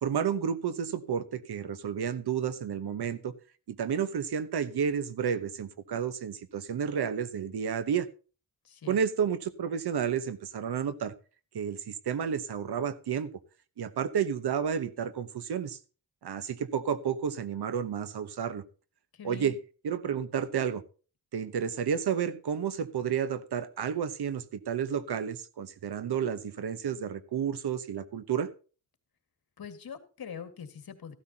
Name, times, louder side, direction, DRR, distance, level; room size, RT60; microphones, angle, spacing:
voice 1, 0.0-3.3 3.7-8.1 8.9-11.1 11.5-13.3 13.8-15.8 16.2-18.6 19.2-19.6 19.8-20.8 21.3-28.5, right 7 dB, 85° right, 1.1 m, -31 dB
voice 2, 8.6-9.0 19.1-19.6 29.6-31.1, left 7 dB, 65° left, 1.9 m, -43 dB
14.5 x 12.5 x 2.8 m
wide cardioid pair, 100°, 38 cm